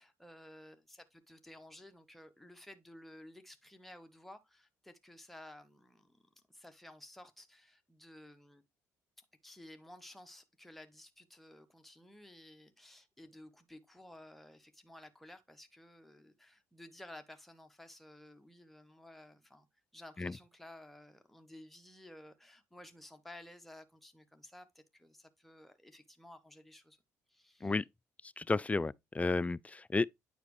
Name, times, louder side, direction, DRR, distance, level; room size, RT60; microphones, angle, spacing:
voice 1, 0.0-6.2 6.5-8.6 9.2-19.7 19.9-27.0 27.3-27.8, left 1 dB, ahead, 1.1 m, -55 dB
voice 2, 28.4-30.1, left 3 dB, 20° left, 0.3 m, -32 dB
9.3 x 4.9 x 3.2 m
hypercardioid pair, 60°, 7 cm